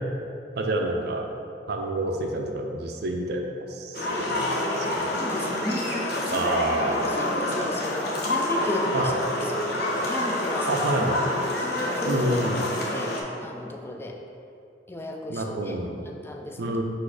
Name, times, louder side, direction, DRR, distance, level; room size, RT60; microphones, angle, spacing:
voice 1, 0.5-1.3 1.7-5.1 6.3-7.0 8.9-9.2 10.7-11.2 12.0-12.6 15.3-16.1 16.6-16.8, right 1 dB, 65° right, 3 dB, 0.5 m, -28 dB
sound 1, 3.9-13.2, left 1 dB, 60° left, 0.7 m, -27 dB
voice 2, 5.1-6.5 6.9-9.7 10.1-10.9 11.6-12.3 12.8-13.1 13.4-14.2 14.9-15.8 16.1-16.8, left 1 dB, 15° left, 2 dB, 0.3 m, -35 dB
4.1 x 2.6 x 4.7 m, 2.5 s
head